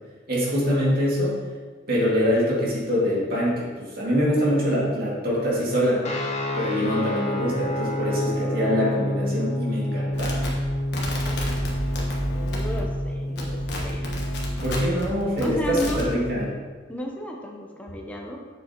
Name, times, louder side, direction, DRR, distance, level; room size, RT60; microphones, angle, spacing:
voice 1, 0.3-1.3 1.9-6.0 6.5-10.5 14.6-16.5, equal, 50° right, -5 dB, 2.2 m, -24 dB
sound 1, 6.0-15.0, left 1 dB, 35° left, 0.9 m, -29 dB
sound 2, 10.1-13.1 13.4-15.0 15.4-16.1, equal, 55° left, 1.3 m, -30 dB
voice 2, 12.3-14.2 15.4-16.0 16.9-18.4, left 1 dB, 5° left, 0 dB, 0.8 m, -33 dB
7.6 x 7.1 x 2.9 m, 1.5 s
head